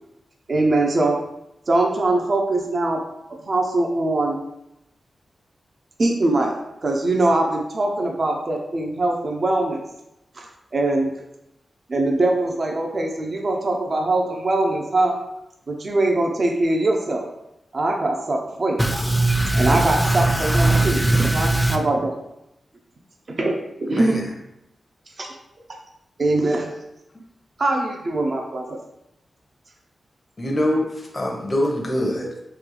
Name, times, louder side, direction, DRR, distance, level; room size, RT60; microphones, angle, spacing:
voice 1, 0.5-1.2 1.7-3.0 3.5-4.4 6.0-6.5 6.8-9.8 10.3-10.5 10.7-11.1 11.9-15.2 15.7-17.2 17.7-18.8 19.6-21.0 21.3-22.1 23.3-24.2 25.2-25.3 26.2-26.7 27.6-28.8 32.2-32.3, right 2 dB, 55° right, 0.6 m, -22 dB
voice 2, 18.8-21.8, right 2 dB, ahead, 0.5 m, -19 dB
voice 3, 23.9-24.2 30.4-32.4, left 1 dB, 35° left, 0.7 m, -24 dB
3.2 x 2.3 x 3.7 m
cardioid pair, 55°, 0 cm